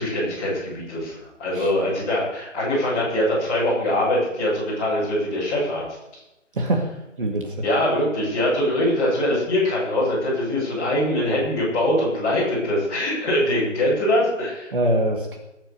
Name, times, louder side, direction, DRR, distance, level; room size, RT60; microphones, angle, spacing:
voice 1, 0.0-5.8 7.6-14.7, left 1 dB, 15° left, -8 dB, 7.1 m, -23 dB
voice 2, 6.5-6.9 7.2-7.6 14.7-15.4, right 1 dB, 45° right, 2 dB, 2.2 m, -23 dB
20.0 x 9.2 x 6.8 m, 0.92 s
figure-of-eight pair, 170°, 38 cm